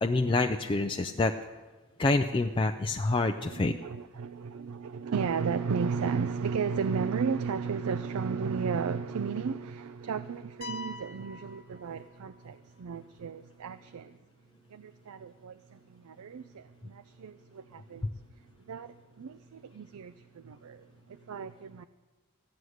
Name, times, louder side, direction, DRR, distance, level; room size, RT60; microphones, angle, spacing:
voice 1, 0.0-1.3 2.0-3.7, left 2 dB, 25° left, 0.4 m, -27 dB
voice 2, 3.4-14.2 14.7-18.1 18.7-21.8, right 5 dB, 75° right, 0.4 m, -34 dB
sound 1, 10.6-12.5, left 3 dB, 45° left, 0.9 m, -44 dB
14.5 x 9.3 x 6.4 m
head